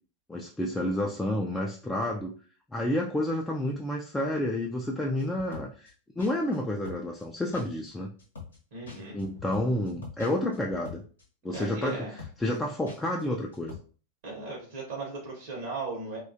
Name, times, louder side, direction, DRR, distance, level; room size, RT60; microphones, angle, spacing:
voice 1, 0.3-2.3 2.7-8.1 9.1-11.0 11.4-12.1 12.4-13.8, left 1 dB, 10° left, -1 dB, 0.3 m, -30 dB
sound 1, 5.2-5.9 6.2-6.6 6.9-7.3 7.5-7.9 8.2-8.6 8.9-11.2 11.5-11.9 12.2-12.6 12.9-13.2 13.5-13.8, left 5 dB, 70° left, 0.7 m, -44 dB
voice 2, 8.7-9.2 11.5-12.2 14.2-16.2, right 3 dB, 55° right, -3 dB, 0.8 m, -37 dB
2.4 x 2.2 x 2.6 m, 0.41 s
figure-of-eight pair, 90°, 0 cm